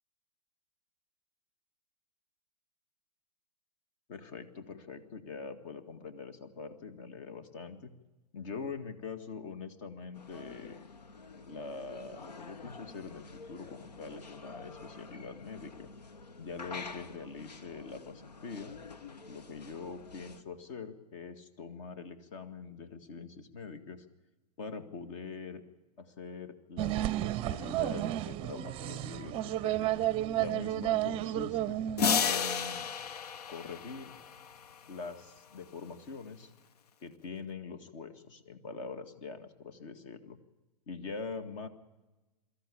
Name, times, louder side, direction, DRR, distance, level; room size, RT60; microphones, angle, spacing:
voice 1, 4.1-7.9 8.3-10.9 11.5-15.9 16.4-18.7 19.3-24.1 24.6-25.6 26.0-29.9 30.4-31.8 32.2-32.9 33.5-34.1 34.9-36.5 37.0-40.4 40.9-41.7, left 4 dB, 50° left, 10 dB, 2.0 m, -43 dB
sound 1, 10.1-20.4, left 4 dB, 85° left, 1.1 m, -48 dB
sound 2, 26.8-32.3, right 14 dB, 25° right, 0.6 m, -32 dB
sound 3, 32.0-34.7, left 6 dB, 70° left, 0.8 m, -32 dB
22.5 x 13.5 x 8.6 m, 1.1 s
hypercardioid pair, 115°, 21 cm